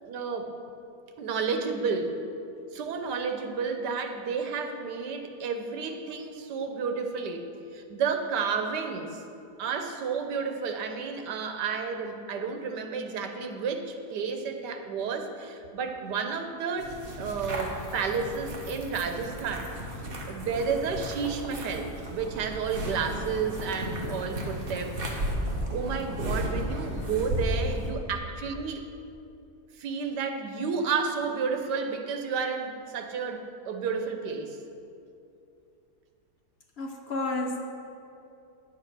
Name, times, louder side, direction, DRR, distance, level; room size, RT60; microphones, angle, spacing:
voice 1, 0.0-0.5 1.2-2.2 2.7-9.2 9.6-19.7 20.3-24.9 25.7-28.9 29.8-34.6, right 5 dB, 90° right, 6 dB, 1.5 m, -31 dB
sound 1, 16.8-27.9, equal, 35° right, 1.4 m, -34 dB
voice 2, 36.8-37.6, left 2 dB, 50° left, 2 dB, 0.9 m, -31 dB
9.9 x 8.1 x 6.1 m, 2.7 s
omnidirectional pair, 1.8 m